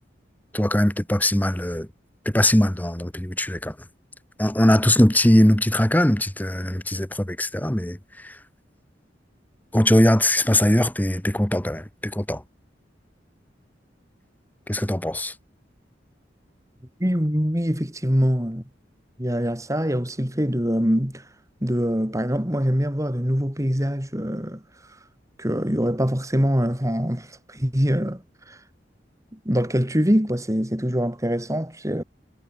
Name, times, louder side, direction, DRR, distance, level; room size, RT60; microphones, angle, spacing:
voice 1, 0.5-1.9 2.3-3.7 4.4-8.0 8.2-8.3 9.7-12.4 14.7-15.3, left 1 dB, 10° left, 1.3 m, -20 dB
voice 2, 17.0-18.6 19.2-21.2 21.6-24.6 25.4-28.6 29.3-32.0, equal, 20° right, 5.4 m, -24 dB
head